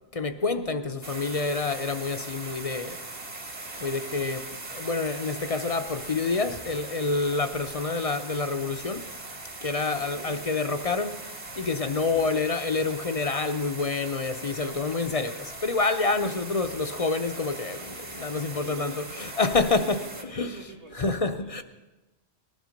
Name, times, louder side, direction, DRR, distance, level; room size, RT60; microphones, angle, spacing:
voice 1, 0.1-3.0 3.8-9.1 9.6-11.2 11.6-20.6 20.9-21.6, left 3 dB, 40° left, 0.7 m, -28 dB
sound 1, 1.0-20.2, right 2 dB, 40° right, 1.6 m, -40 dB
voice 2, 9.8-10.5 11.9-12.3 16.1-16.4 18.5-21.6, right 3 dB, 90° right, 2.4 m, -46 dB
19.0 x 11.5 x 5.2 m
omnidirectional pair, 1.1 m